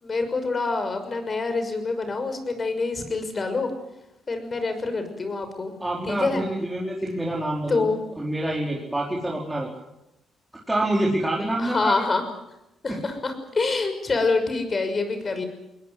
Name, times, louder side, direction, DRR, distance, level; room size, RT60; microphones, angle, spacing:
voice 1, 0.0-3.7 4.3-5.7 6.0-6.4 7.7-8.0 11.6-12.2 12.8-15.5, left 3 dB, 35° left, 8 dB, 6.0 m, -26 dB
voice 2, 5.8-7.9 8.2-9.7 10.7-11.9 12.9-13.0, right 1 dB, 10° right, -3 dB, 4.7 m, -26 dB
20.5 x 20.5 x 9.5 m, 0.90 s
cardioid pair, 90°, 0 cm